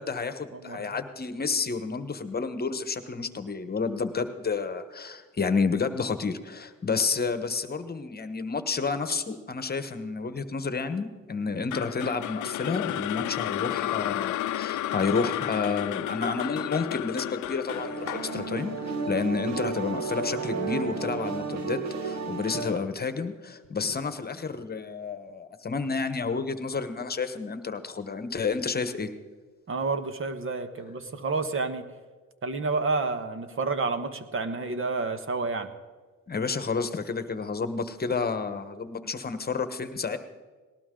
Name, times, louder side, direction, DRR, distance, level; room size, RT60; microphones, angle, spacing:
voice 1, 0.0-29.1 36.3-40.2, left 4 dB, 30° left, 10 dB, 1.2 m, -30 dB
voice 2, 0.5-1.0 29.7-31.9 32.4-35.7, right 3 dB, 45° right, 9 dB, 1.4 m, -30 dB
sound 1, 11.7-19.9, left 14 dB, 75° left, 0.6 m, -32 dB
sound 2, 17.7-22.8, right 4 dB, 65° right, 1.6 m, -32 dB
19.0 x 18.5 x 3.8 m, 1.4 s
cardioid pair, 90°, 30 cm